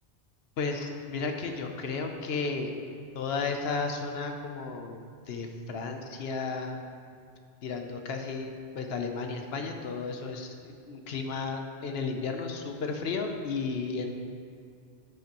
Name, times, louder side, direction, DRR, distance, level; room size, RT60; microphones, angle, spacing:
voice 1, 0.6-2.7 3.1-5.0 5.3-6.8 7.6-14.1, left 4 dB, 70° left, 4 dB, 0.9 m, -33 dB
9.9 x 6.5 x 2.9 m, 2.3 s
omnidirectional pair, 1.1 m